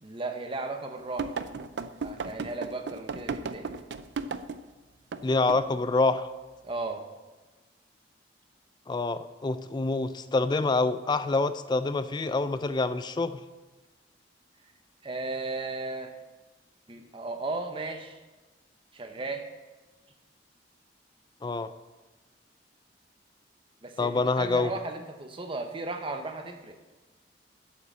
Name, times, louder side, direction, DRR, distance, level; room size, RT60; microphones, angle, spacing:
voice 1, 0.0-1.4 2.0-3.7 6.6-7.0 15.0-16.1 16.9-18.2 18.9-19.5 23.8-26.8, right 3 dB, 25° right, 5 dB, 0.8 m, -35 dB
sound 1, 1.2-4.7 5.1-5.2 5.5-5.7, right 4 dB, 60° right, 0.4 m, -34 dB
voice 2, 5.2-6.3 8.9-13.4 21.4-21.7 24.0-24.7, left 3 dB, 25° left, 13 dB, 0.3 m, -26 dB
8.0 x 5.6 x 7.5 m, 1.2 s
head